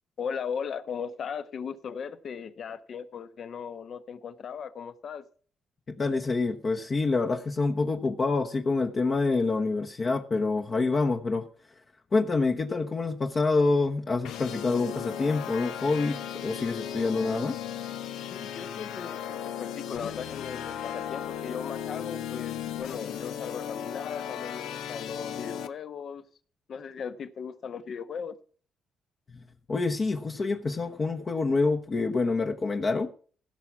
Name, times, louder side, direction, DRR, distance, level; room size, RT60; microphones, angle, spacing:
voice 1, 0.2-5.3 18.3-26.2 26.7-28.4, left 6 dB, 55° left, 1.1 m, -37 dB
voice 2, 5.9-11.5 12.1-17.6 29.7-33.1, left 3 dB, 35° left, 1.0 m, -27 dB
sound 1, 14.2-25.7, left 9 dB, 85° left, 0.8 m, -36 dB
16.0 x 5.9 x 5.9 m
cardioid pair, 90°, 0 cm